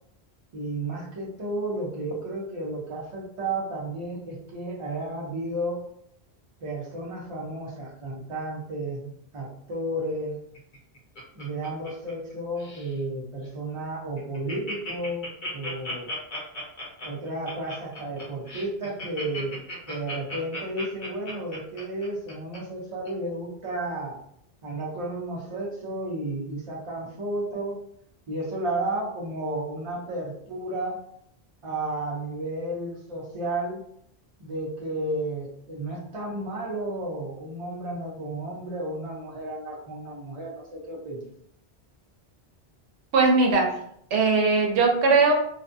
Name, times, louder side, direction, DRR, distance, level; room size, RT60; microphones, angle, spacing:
voice 1, 0.5-5.8 6.6-10.4 11.3-16.1 17.0-19.6 19.9-24.2 24.6-27.8 28.3-31.0 31.6-33.8 34.4-41.3, right 1 dB, 35° right, -4 dB, 0.7 m, -32 dB
Laughter, 10.5-12.3 12.6-12.9 13.4-13.5 13.8-13.9 14.2-22.6 23.1-23.2, left 1 dB, 50° left, 0.9 m, -36 dB
voice 2, 43.1-43.7 44.1-45.3, right 3 dB, 90° right, 1 dB, 0.9 m, -19 dB
2.5 x 2.2 x 2.5 m, 0.70 s
omnidirectional pair, 1.1 m